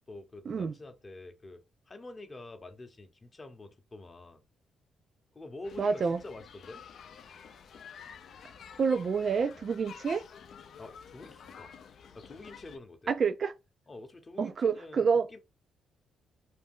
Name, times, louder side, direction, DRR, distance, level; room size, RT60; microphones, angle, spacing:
voice 1, 0.1-4.5 5.3-6.8 10.8-11.7 12.1-13.1 13.9-15.4, left 2 dB, 30° left, 0.7 m, -47 dB
sound 1, 5.6-12.8, left 7 dB, 60° left, 0.4 m, -50 dB
voice 2, 5.8-6.2 8.8-10.2 13.1-13.5 14.4-15.3, right 5 dB, 45° right, 0.3 m, -28 dB
2.5 x 2.2 x 3.5 m
cardioid pair, 90°, 0 cm